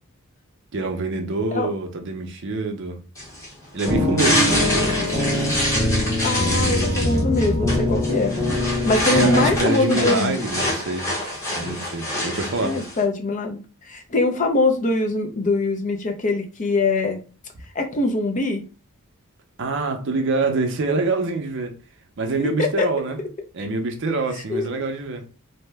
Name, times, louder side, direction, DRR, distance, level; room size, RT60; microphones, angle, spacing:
voice 1, 0.7-3.0 3.7-5.5 9.1-11.1 11.5-12.8 19.6-21.7 22.2-23.2 23.5-25.2, right 3 dB, 55° right, 0.6 m, -25 dB
sound 1, 3.2-13.0, left 1 dB, 15° left, 0.8 m, -26 dB
voice 2, 3.9-4.7 6.2-8.3 8.6-10.5 12.6-17.2 17.7-18.6 22.4-22.9 24.5-24.7, left 2 dB, 35° left, 0.5 m, -23 dB
sound 2, 3.9-9.6, left 2 dB, 15° right, 0.8 m, -23 dB
sound 3, 6.2-11.1, left 2 dB, 85° left, 1.3 m, -38 dB
2.7 x 2.1 x 3.3 m
head